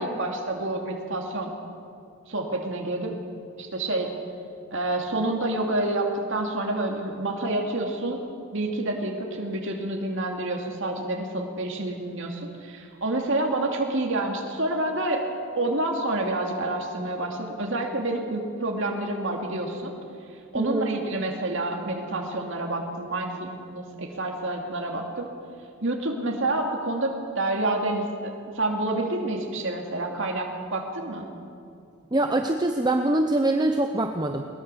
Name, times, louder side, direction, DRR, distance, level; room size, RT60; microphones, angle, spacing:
voice 1, 0.0-1.5 2.3-3.1 3.6-4.1 4.7-8.2 8.5-15.3 15.6-19.9 20.5-25.3 25.8-31.3, right 2 dB, 55° right, 1 dB, 2.5 m, -28 dB
voice 2, 20.5-20.9 32.1-34.5, right 1 dB, 20° right, 5 dB, 0.7 m, -24 dB
21.0 x 20.5 x 7.0 m, 2.4 s
head